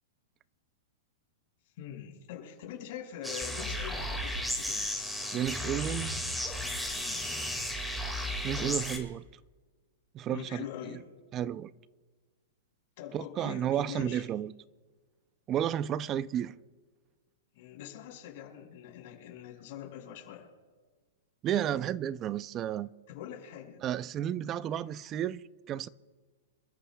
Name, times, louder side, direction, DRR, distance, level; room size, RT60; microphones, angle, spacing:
voice 1, 1.8-4.9 6.9-7.3 10.3-11.0 13.0-14.2 17.5-20.5 23.1-23.8, left 10 dB, 50° left, 5.1 m, -44 dB
sound 1, 3.2-9.0, equal, ahead, 2.0 m, -34 dB
voice 2, 5.3-6.2 8.4-9.2 10.1-10.7 11.3-11.7 13.1-14.5 15.5-16.6 21.4-22.9 23.8-25.9, right 10 dB, 25° right, 0.4 m, -32 dB
27.5 x 13.5 x 2.3 m
hypercardioid pair, 155°, 0 cm